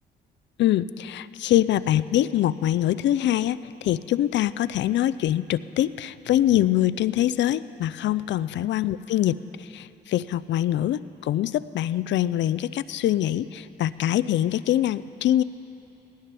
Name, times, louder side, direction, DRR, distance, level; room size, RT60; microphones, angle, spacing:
voice 1, 0.6-15.4, left 12 dB, 65° left, 16 dB, 0.4 m, -24 dB
19.0 x 16.5 x 3.4 m, 2.9 s
cardioid pair, 90°, 20 cm